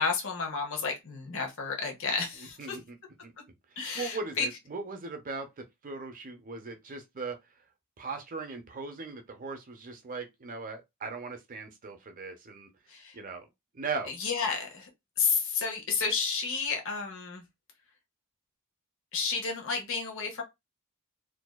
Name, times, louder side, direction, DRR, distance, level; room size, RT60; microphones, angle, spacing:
voice 1, 0.0-2.8 3.8-4.5 12.9-13.2 14.1-14.9 15.2-17.4 19.1-20.4, left 5 dB, 60° left, 0.8 m, -31 dB
voice 2, 2.4-3.0 3.2-3.3 3.7-7.4 8.0-12.7 13.1-13.5 13.7-14.1, right 4 dB, 40° right, 0.5 m, -39 dB
2.6 x 2.2 x 2.2 m
head